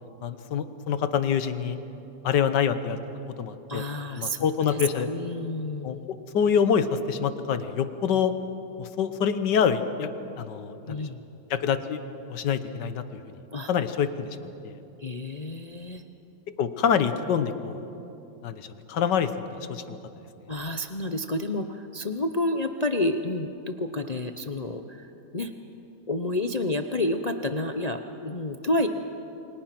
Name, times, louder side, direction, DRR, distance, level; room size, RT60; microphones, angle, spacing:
voice 1, 0.2-1.8 2.2-3.0 3.4-3.8 4.1-5.1 5.8-8.3 8.8-10.1 10.4-11.0 11.5-12.0 12.3-13.0 13.7-14.3 14.6-14.8 16.6-17.9 18.4-20.0, left 7 dB, 70° left, 11 dB, 1.7 m, -26 dB
voice 2, 3.7-6.1 10.9-11.2 13.5-13.7 15.0-16.0 20.5-25.5 26.1-28.9, left 1 dB, 55° left, 6 dB, 0.4 m, -30 dB
28.5 x 24.5 x 6.0 m, 2.9 s
omnidirectional pair, 2.0 m